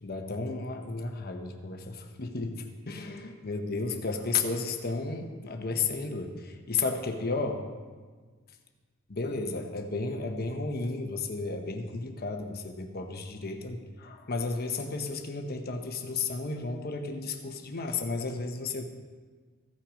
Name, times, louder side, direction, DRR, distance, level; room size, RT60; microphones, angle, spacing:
voice 1, 0.0-7.6 9.1-18.8, left 4 dB, 45° left, 5 dB, 0.9 m, -33 dB
14.5 x 5.9 x 5.1 m, 1.5 s
head